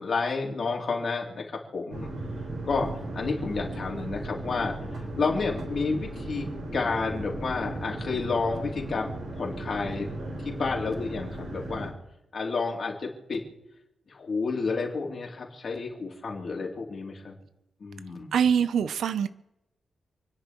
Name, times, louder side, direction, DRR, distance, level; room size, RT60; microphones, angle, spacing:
voice 1, 0.0-1.4 1.7-2.1 2.6-4.7 5.2-9.1 9.3-10.1 10.4-11.9 12.3-13.4 14.1-17.3 17.8-18.3, left 4 dB, 45° left, 2.9 m, -30 dB
sound 1, 1.9-11.9, right 1 dB, 60° right, 4.3 m, -36 dB
voice 2, 18.3-19.3, right 7 dB, 90° right, 0.5 m, -24 dB
29.0 x 10.5 x 3.0 m
wide cardioid pair, 165°, 0 cm